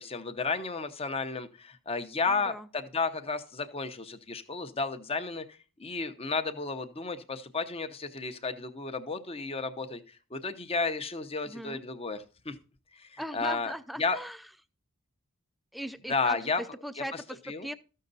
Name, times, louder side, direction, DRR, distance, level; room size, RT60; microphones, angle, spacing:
voice 1, 0.0-12.6 12.9-13.7 14.0-14.2 16.1-16.6 17.0-17.2 17.5-17.7, left 4 dB, 25° left, 8 dB, 0.8 m, -33 dB
voice 2, 2.3-2.7 11.4-11.8 13.2-14.4 15.7-17.7, equal, ahead, 14 dB, 0.4 m, -39 dB
13.5 x 6.5 x 4.0 m, 0.35 s
head